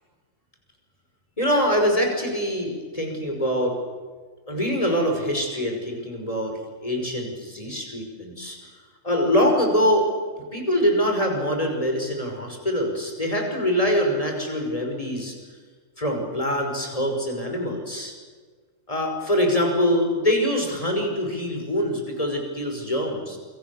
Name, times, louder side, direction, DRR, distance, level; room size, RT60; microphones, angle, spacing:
voice 1, 1.4-3.8 4.5-8.6 9.0-10.1 10.5-15.3 16.0-18.1 18.9-23.4, equal, 25° left, 2 dB, 5.8 m, -24 dB
28.5 x 23.0 x 7.2 m, 1.5 s
omnidirectional pair, 1.4 m